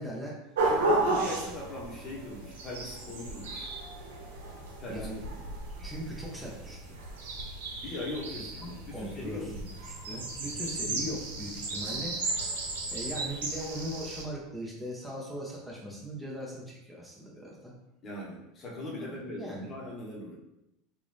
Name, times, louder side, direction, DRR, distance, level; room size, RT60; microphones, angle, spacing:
voice 1, 0.0-1.0 4.9-5.5 5.8-7.0 8.6-12.2 12.9-17.7 19.0-19.8, equal, 5° right, -5 dB, 1.0 m, -40 dB
voice 2, 0.6-3.7 4.8-5.4 7.8-9.5 18.0-20.4, left 1 dB, 35° left, -4 dB, 1.1 m, -40 dB
sound 1, 0.6-14.2, right 2 dB, 90° right, 0.8 m, -34 dB
3.7 x 2.5 x 3.2 m, 0.87 s
supercardioid pair, 105°, 0 cm